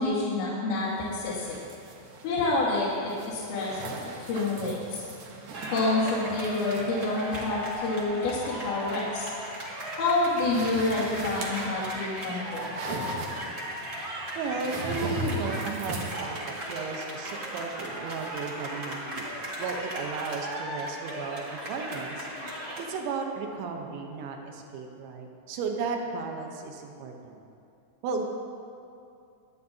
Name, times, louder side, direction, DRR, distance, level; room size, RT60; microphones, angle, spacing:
voice 1, 0.0-1.6 2.2-3.8 4.2-4.8 5.7-9.3 10.0-12.7, left 2 dB, 80° left, -8 dB, 4.1 m, -28 dB
sound 1, 0.7-16.1, right 2 dB, 65° right, 2.2 m, -40 dB
sound 2, 5.5-22.8, equal, 40° right, 1.4 m, -37 dB
voice 2, 14.4-19.3 19.6-22.3 22.8-27.4 28.0-28.3, right 4 dB, 85° right, 2 dB, 3.3 m, -34 dB
24.0 x 9.5 x 2.8 m, 2.5 s
omnidirectional pair, 5.1 m